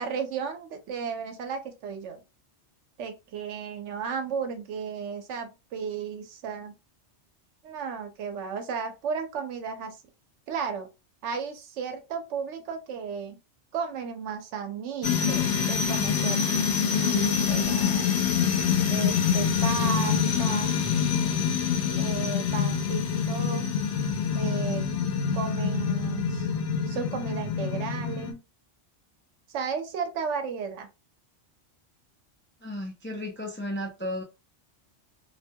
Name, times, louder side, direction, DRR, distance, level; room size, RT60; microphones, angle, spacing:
voice 1, 0.0-2.2 3.0-6.7 7.6-10.0 10.5-10.9 11.2-13.4 13.7-18.1 18.9-20.8 22.0-23.7 24.3-24.9 25.3-26.5 26.9-28.4 29.5-30.9, right 6 dB, 85° right, 1.0 m, -34 dB
sound 1, 15.0-28.3, left 7 dB, 75° left, 0.9 m, -26 dB
voice 2, 32.6-34.2, left 1 dB, 20° left, 0.3 m, -34 dB
2.5 x 2.1 x 2.7 m
omnidirectional pair, 1.2 m